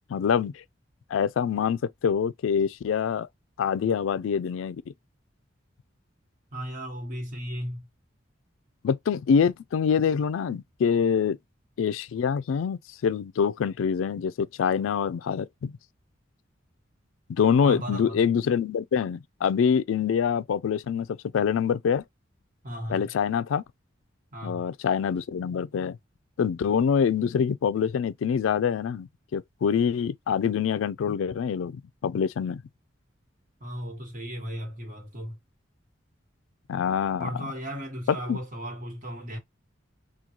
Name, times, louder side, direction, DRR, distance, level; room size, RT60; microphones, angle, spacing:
voice 1, 0.1-0.6 1.1-3.3 3.6-4.8 8.8-11.4 11.8-15.7 17.3-22.0 22.9-23.6 24.4-26.0 26.4-32.6 36.7-37.3 38.3-38.4, left 7 dB, 80° left, 0.3 m, -25 dB
voice 2, 6.5-7.9 17.6-18.2 22.6-23.1 24.3-24.7 33.6-35.4 37.2-39.4, equal, 45° right, 1.3 m, -35 dB
3.7 x 2.3 x 2.9 m
head